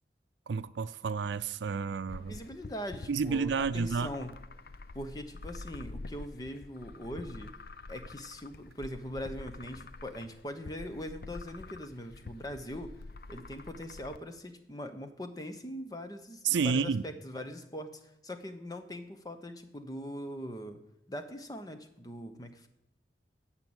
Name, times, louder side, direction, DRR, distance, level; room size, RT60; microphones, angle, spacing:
voice 1, 0.5-2.4 3.1-4.1 16.4-17.0, right 5 dB, 90° right, 0.4 m, -30 dB
sound 1, 2.1-14.2, left 2 dB, 55° left, 0.5 m, -47 dB
voice 2, 2.2-4.3 4.9-7.5 7.9-13.0 13.3-20.8 21.1-22.7, equal, 20° left, 0.9 m, -41 dB
10.5 x 7.5 x 8.7 m
head